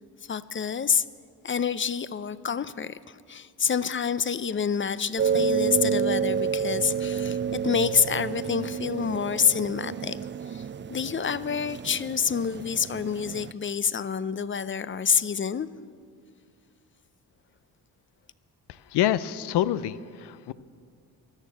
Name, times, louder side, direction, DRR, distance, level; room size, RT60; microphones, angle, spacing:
voice 1, 0.2-1.0 1.4-10.2 10.5-10.6 10.9-15.7, left 7 dB, 30° left, 16 dB, 0.5 m, -27 dB
sound 1, 5.2-13.5, right 7 dB, 30° right, 0.4 m, -29 dB
voice 2, 18.7-20.5, left 12 dB, 80° left, 15 dB, 0.6 m, -27 dB
14.0 x 11.0 x 7.6 m, 2.1 s
cardioid pair, 70°, 40 cm